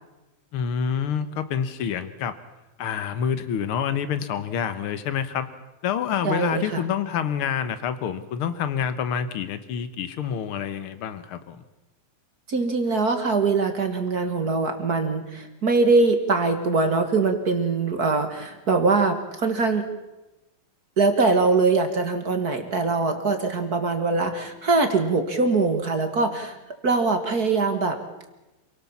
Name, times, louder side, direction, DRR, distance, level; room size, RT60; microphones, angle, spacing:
voice 1, 0.5-2.3 2.8-5.5 5.8-11.6, left 8 dB, 85° left, 12 dB, 1.2 m, -27 dB
voice 2, 6.2-6.8 12.5-19.9 21.0-26.6 26.8-28.0, right 3 dB, 40° right, 6 dB, 1.5 m, -22 dB
28.0 x 18.0 x 7.2 m, 1.0 s
omnidirectional pair, 4.1 m